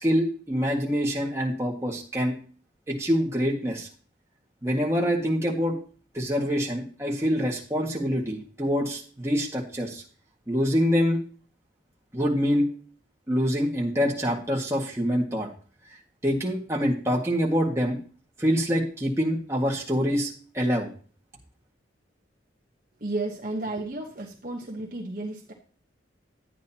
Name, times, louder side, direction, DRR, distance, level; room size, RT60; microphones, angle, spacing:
voice 1, 0.0-2.3 2.9-3.9 4.6-5.8 6.1-10.0 10.5-11.2 12.1-12.7 13.3-15.5 16.2-18.0 18.4-20.9, equal, 15° right, -3 dB, 1.9 m, -25 dB
voice 2, 23.0-25.5, right 2 dB, 45° right, 0 dB, 1.1 m, -33 dB
12.0 x 9.1 x 2.9 m, 0.41 s
head